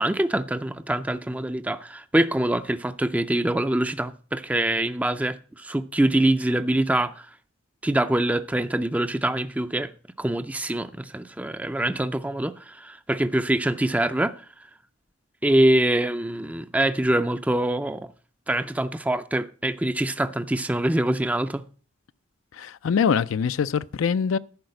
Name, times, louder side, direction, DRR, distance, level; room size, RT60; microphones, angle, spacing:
voice 1, 0.0-7.3 7.8-9.9 10.2-14.3 15.4-18.1 18.5-21.6, right 1 dB, 5° right, 0.4 m, -24 dB
voice 2, 22.5-24.4, left 6 dB, 80° left, 0.4 m, -23 dB
10.5 x 4.8 x 7.8 m
head